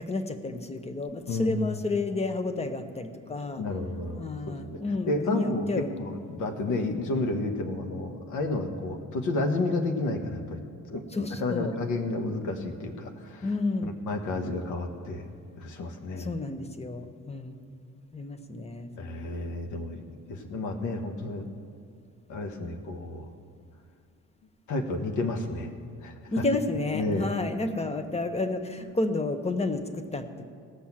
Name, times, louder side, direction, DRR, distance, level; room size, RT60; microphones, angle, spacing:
voice 1, 0.0-3.6 4.2-5.9 11.1-11.7 13.4-13.9 16.2-17.7 18.1-18.9 26.3-30.4, left 2 dB, 20° left, 8 dB, 1.1 m, -31 dB
voice 2, 1.3-1.7 3.6-4.8 5.1-10.6 10.9-13.5 13.8-15.3 15.6-16.3 19.0-20.0 20.3-21.5 22.3-23.3 24.7-25.7 26.0-26.4 26.9-27.3, left 2 dB, 80° left, 4 dB, 1.4 m, -31 dB
17.0 x 6.2 x 7.4 m, 2.5 s
cardioid pair, 90°, 30 cm